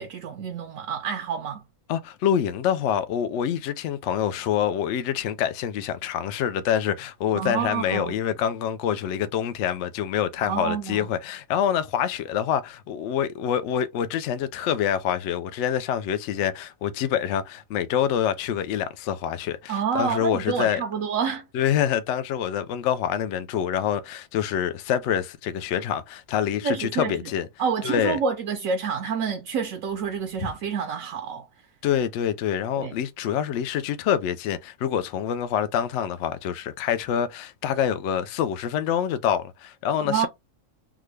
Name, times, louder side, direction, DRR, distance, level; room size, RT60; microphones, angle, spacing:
voice 1, 0.0-1.6 7.3-8.1 10.4-11.1 19.7-21.4 26.6-27.3 27.6-31.5 32.7-33.0 40.0-40.3, right 6 dB, 75° right, 1.0 m, -28 dB
voice 2, 1.9-20.8 21.5-27.5 27.8-28.2 30.4-30.5 31.8-40.3, left 9 dB, 65° left, 0.8 m, -26 dB
3.6 x 2.2 x 3.1 m
omnidirectional pair, 1.5 m